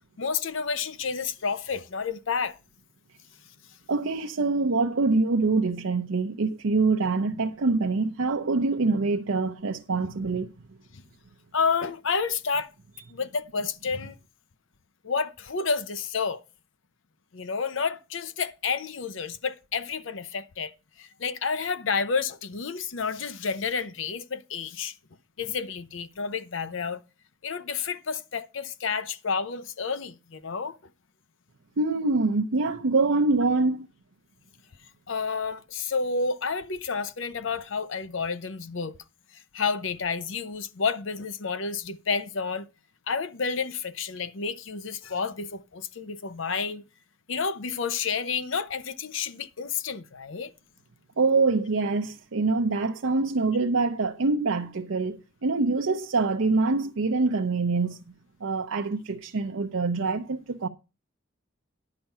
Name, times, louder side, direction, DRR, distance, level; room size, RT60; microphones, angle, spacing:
voice 1, 0.2-2.6 10.9-11.0 11.5-12.7 13.1-14.2 15.0-16.4 17.3-20.7 21.0-24.9 25.4-27.0 27.4-30.8 35.1-38.9 39.3-42.7 43.1-46.8 47.3-50.5, left 5 dB, 70° left, 0.7 m, -30 dB
voice 2, 3.9-10.5 31.8-33.9 51.2-58.0 58.4-60.7, right 3 dB, 80° right, 0.6 m, -25 dB
11.0 x 5.8 x 5.4 m
head